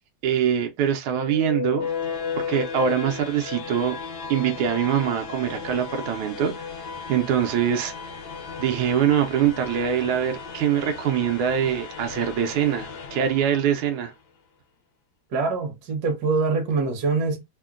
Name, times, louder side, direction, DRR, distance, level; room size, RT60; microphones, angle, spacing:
voice 1, 0.2-1.9 2.3-4.0 4.3-6.5 7.1-7.9 8.6-14.1, right 9 dB, 80° right, 1.4 m, -23 dB
sound 1, 1.1-14.1, left 6 dB, 60° left, 1.1 m, -35 dB
voice 2, 15.3-17.4, right 4 dB, 60° right, 1.2 m, -24 dB
3.6 x 2.1 x 2.3 m
omnidirectional pair, 2.3 m